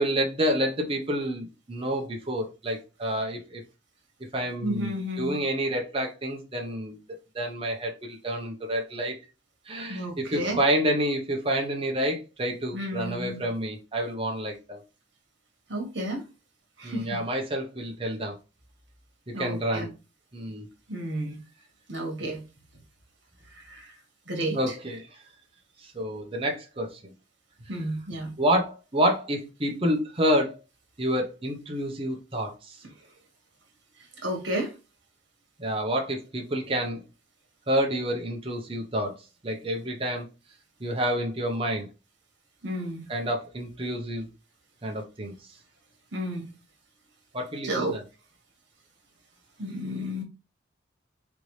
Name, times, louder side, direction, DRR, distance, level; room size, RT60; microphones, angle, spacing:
voice 1, 0.0-3.6 4.3-7.0 7.3-9.2 9.7-14.8 16.8-18.4 19.4-19.9 20.3-20.7 24.5-25.0 25.8-27.1 28.4-30.6 31.0-32.8 35.6-37.0 37.7-39.1 39.4-40.3 40.8-41.9 43.1-44.3 44.8-45.3 47.3-48.0, equal, 30° right, 0.8 m, -28 dB
voice 2, 4.6-5.4 9.9-10.6 12.7-13.5 15.7-16.2 16.8-17.2 19.3-19.9 20.9-21.4 21.9-22.4 23.5-23.9 24.3-24.7 27.7-28.3 34.2-34.7 42.6-43.1 46.1-46.5 47.6-48.0 49.6-50.2, right 1 dB, 70° right, 1.5 m, -32 dB
4.0 x 3.4 x 3.1 m
head